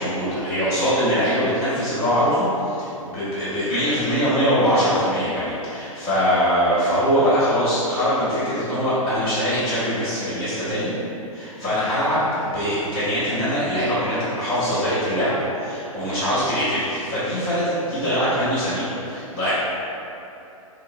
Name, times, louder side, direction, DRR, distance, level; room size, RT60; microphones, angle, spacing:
voice 1, 0.0-10.9 11.3-19.5, equal, 25° left, -13 dB, 1.5 m, -22 dB
3.8 x 2.2 x 3.2 m, 2.9 s
figure-of-eight pair, 115°, 18 cm